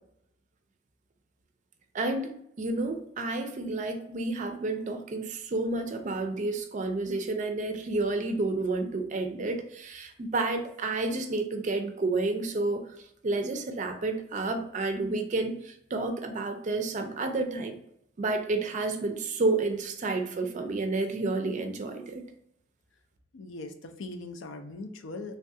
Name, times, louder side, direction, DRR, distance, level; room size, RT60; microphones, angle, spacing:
voice 1, 1.9-12.8 13.2-17.8 18.2-22.3, right 3 dB, 40° right, 6 dB, 0.4 m, -30 dB
voice 2, 23.3-25.4, left 2 dB, 75° left, 6 dB, 0.4 m, -40 dB
3.4 x 2.3 x 2.6 m, 0.74 s
head